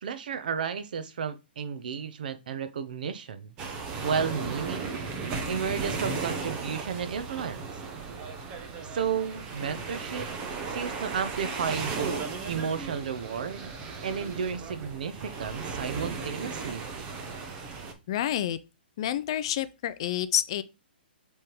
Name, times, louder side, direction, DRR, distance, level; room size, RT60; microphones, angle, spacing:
voice 1, 0.0-3.5 4.0-5.0 5.5-7.7 8.8-10.3 10.7-13.7 14.0-16.9, right 6 dB, 55° right, 0.9 m, -32 dB
sound 1, 3.6-17.9, right 4 dB, 15° right, 0.9 m, -36 dB
voice 2, 18.1-18.6 19.0-20.6, left 11 dB, 30° left, 0.4 m, -28 dB
7.8 x 3.5 x 4.6 m
hypercardioid pair, 175°, 6 cm